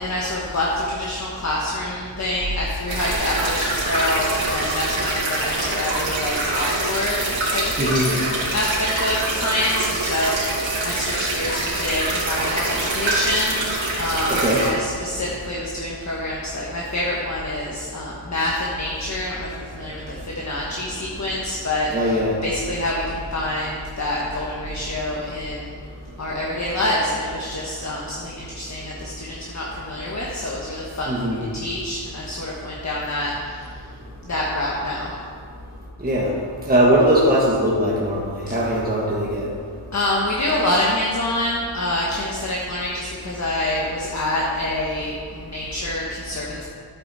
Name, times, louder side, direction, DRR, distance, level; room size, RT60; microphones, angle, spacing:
voice 1, 0.0-7.2 7.5-25.7 26.2-33.7 34.2-35.1 39.9-46.6, left 1 dB, 35° left, -4 dB, 1.4 m, -26 dB
sound 1, 2.9-14.7, right 2 dB, 70° right, 2.9 m, -25 dB
voice 2, 7.8-8.1 14.3-14.6 21.9-22.4 31.1-31.4 36.0-36.3 36.7-39.5, equal, 20° right, -4 dB, 1.4 m, -20 dB
12.0 x 8.7 x 4.2 m, 2.1 s
wide cardioid pair, 125°, 48 cm